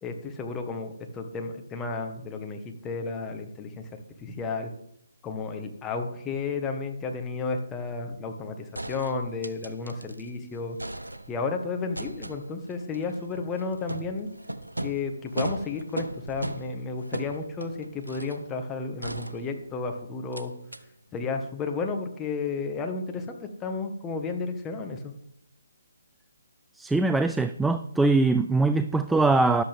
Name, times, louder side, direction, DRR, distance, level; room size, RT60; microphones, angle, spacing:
voice 1, 0.0-3.9 4.2-4.7 5.2-10.8 11.3-14.3 14.8-20.5 21.1-25.1, left 4 dB, 15° left, 4 dB, 1.5 m, -32 dB
sound 1, 8.3-8.4 8.7-10.3 10.6-11.5 11.9-18.5 19.0-19.9 20.3-20.4 20.7-20.8, right 1 dB, 90° right, 1.1 m, -37 dB
voice 2, 26.8-29.6, right 3 dB, 5° right, 10 dB, 0.3 m, -22 dB
13.5 x 11.5 x 3.6 m, 0.74 s
figure-of-eight pair, 140°, 0 cm